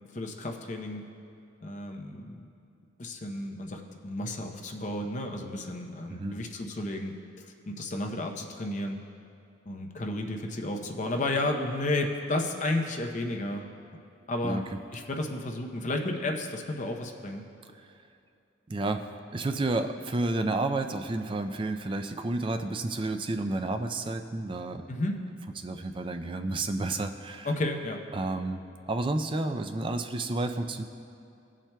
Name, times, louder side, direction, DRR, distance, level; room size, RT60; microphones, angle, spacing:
voice 1, 0.1-1.1 1.6-2.5 3.0-9.0 9.7-13.7 14.3-14.6 14.9-17.4 24.9-25.2 27.4-28.0, left 2 dB, 40° left, 3 dB, 0.7 m, -32 dB
voice 2, 18.7-19.0 19.3-24.8 25.6-27.5 28.1-30.8, right 2 dB, 25° right, 7 dB, 0.4 m, -31 dB
17.5 x 7.3 x 2.2 m, 2.5 s
head